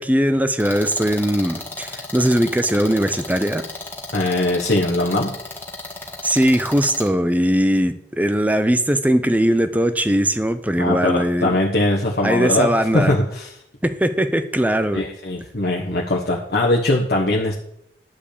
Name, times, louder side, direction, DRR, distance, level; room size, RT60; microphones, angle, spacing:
voice 1, 0.0-3.6 6.2-11.6 12.2-13.2 13.8-15.0, equal, 10° right, 10 dB, 0.7 m, -20 dB
sound 1, 0.6-7.1, left 3 dB, 10° left, 1.9 m, -34 dB
voice 2, 4.1-5.3 10.8-13.5 14.9-17.6, left 2 dB, 60° left, -2 dB, 1.3 m, -21 dB
11.0 x 5.3 x 8.5 m, 0.73 s
head